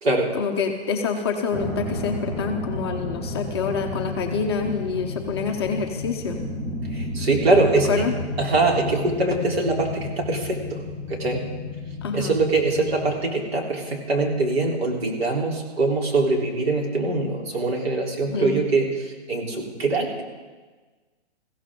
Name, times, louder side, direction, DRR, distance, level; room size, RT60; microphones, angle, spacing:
voice 1, 0.3-6.4 7.9-8.1 12.0-12.4 18.2-18.6, left 5 dB, 25° left, 2 dB, 0.7 m, -27 dB
sound 1, 1.5-13.2, left 2 dB, 25° right, 2.4 m, -32 dB
voice 2, 6.9-8.1 8.4-10.8 11.1-11.5 12.1-20.2, right 3 dB, 60° right, 0 dB, 3.6 m, -23 dB
21.5 x 15.5 x 3.7 m, 1.3 s
hypercardioid pair, 165°, 34 cm